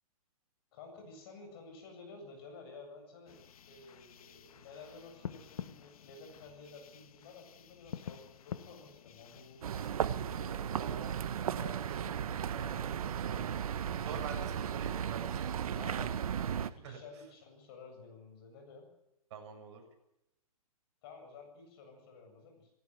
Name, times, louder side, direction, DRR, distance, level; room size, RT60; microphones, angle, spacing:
voice 1, 0.7-3.4 3.6-10.9 11.6-12.1 15.7-16.1 16.5-18.9 21.0-22.7, left 4 dB, 40° left, 4 dB, 7.9 m, -52 dB
sound 1, 3.3-9.9, left 9 dB, 70° left, 1.2 m, -48 dB
sound 2, 9.6-16.7, right 8 dB, 70° right, 1.3 m, -35 dB
voice 2, 10.8-11.1 11.4-12.0 12.5-13.6 14.0-16.0 16.7-17.0 19.3-19.8, right 5 dB, 45° right, 3 dB, 7.0 m, -47 dB
19.5 x 17.5 x 9.5 m, 0.85 s
hypercardioid pair, 155°, 19 cm